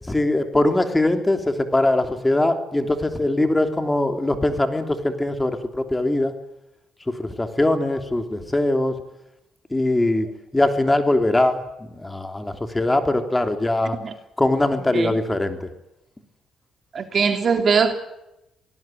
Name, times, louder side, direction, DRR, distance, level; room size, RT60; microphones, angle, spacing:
voice 1, 0.0-6.3 7.1-9.0 9.7-10.3 10.5-14.0 14.4-15.7, left 1 dB, 15° left, 3.2 m, -21 dB
voice 2, 16.9-17.9, right 5 dB, 50° right, 3.0 m, -20 dB
24.5 x 18.5 x 9.2 m
cardioid pair, 90°, 0 cm